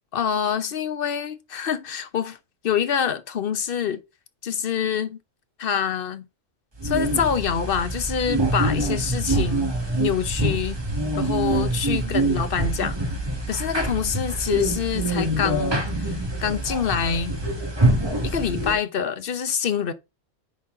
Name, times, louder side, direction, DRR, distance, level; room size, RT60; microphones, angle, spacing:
voice 1, 0.1-2.4 2.6-4.0 4.4-5.2 5.6-6.3 6.8-9.7 10.0-10.8 11.1-13.0 13.5-17.3 18.2-19.9, left 8 dB, 50° left, 0.9 m, -26 dB
sound 1, 6.8-18.7, right 2 dB, 20° right, 1.8 m, -25 dB
9.9 x 4.2 x 3.8 m
omnidirectional pair, 1.3 m